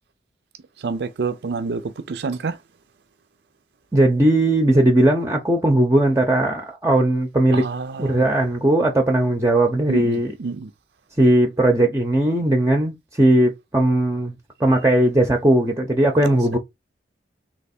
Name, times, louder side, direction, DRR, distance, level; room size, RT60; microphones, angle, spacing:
voice 1, 0.8-1.8 2.1-2.5 7.6-7.9 9.9-10.1 10.4-10.6, right 4 dB, 65° right, 0.4 m, -26 dB
voice 2, 3.9-7.6 8.0-10.3 11.2-14.3 14.6-16.6, right 1 dB, 15° right, 0.6 m, -18 dB
3.3 x 3.0 x 4.2 m
head